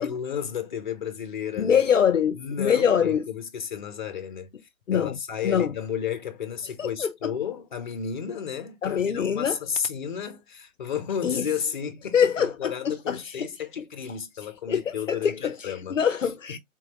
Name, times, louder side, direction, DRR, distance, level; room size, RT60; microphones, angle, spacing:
voice 1, 0.0-1.8 2.3-4.5 4.9-16.0 16.5-16.6, left 8 dB, 35° left, 0.8 m, -32 dB
voice 2, 1.6-3.2 4.9-5.2 5.4-5.7 6.8-7.3 8.8-9.6 11.2-11.5 12.1-13.5 14.7-15.5 15.9-16.6, left 7 dB, 65° left, 0.6 m, -24 dB
3.8 x 2.9 x 3.0 m
figure-of-eight pair, 135°, 41 cm